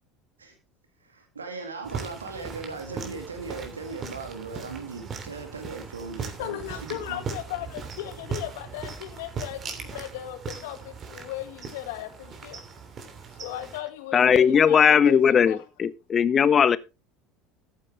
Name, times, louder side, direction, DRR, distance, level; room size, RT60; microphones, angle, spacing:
voice 1, 1.1-7.2, right 4 dB, 90° right, 2.0 m, -38 dB
sound 1, 1.8-13.8, right 5 dB, 40° right, 3.0 m, -39 dB
voice 2, 6.4-12.6 13.4-15.6, left 13 dB, 70° left, 1.9 m, -36 dB
voice 3, 14.1-16.8, left 7 dB, 35° left, 0.8 m, -19 dB
13.5 x 8.9 x 3.3 m
hypercardioid pair, 70°, 0 cm